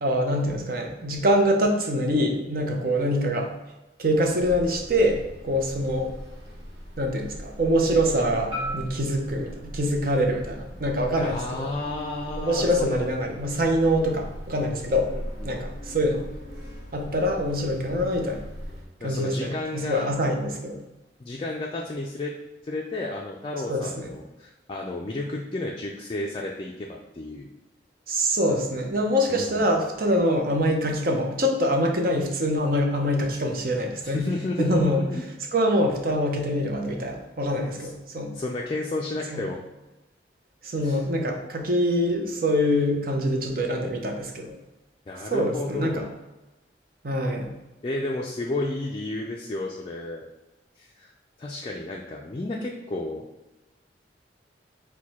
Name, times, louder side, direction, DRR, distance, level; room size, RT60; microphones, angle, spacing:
voice 1, 0.0-3.5 4.0-6.1 7.0-11.7 12.4-15.1 15.4-16.2 16.9-18.4 19.0-20.8 23.7-24.1 28.1-34.3 34.6-35.0 35.5-38.3 39.3-39.5 40.6-44.5 45.3-46.0 47.0-47.5, equal, 55° right, 2 dB, 0.6 m, -24 dB
sound 1, 4.4-18.9, equal, 70° right, 1.0 m, -39 dB
Marimba xylophone, 8.5-12.7, equal, 25° right, 1.1 m, -40 dB
voice 2, 11.2-13.0 15.1-15.7 19.0-20.1 21.2-22.3 22.6-27.5 29.3-29.7 34.0-35.2 37.6-37.9 38.3-39.6 40.8-41.0 45.1-46.1 47.8-50.3 50.8-51.1 51.4-53.3, left 2 dB, 30° left, -1 dB, 0.3 m, -32 dB
4.6 x 2.2 x 4.1 m, 1.0 s
head